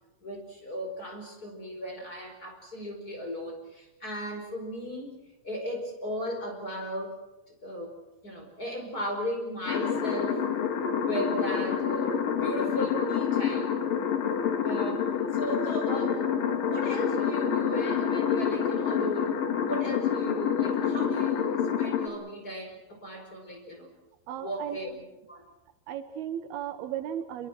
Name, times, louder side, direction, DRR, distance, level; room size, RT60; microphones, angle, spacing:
voice 1, 0.2-5.2 5.4-7.1 7.6-8.0 8.2-10.4 11.0-13.7 14.6-23.9 24.4-25.5, equal, 25° left, 3 dB, 5.2 m, -36 dB
sound 1, 9.7-22.1, left 7 dB, 65° left, 3.2 m, -28 dB
voice 2, 24.3-24.8 25.9-27.5, right 10 dB, 80° right, 9 dB, 3.2 m, -35 dB
28.0 x 22.5 x 6.2 m, 0.97 s
omnidirectional pair, 4.4 m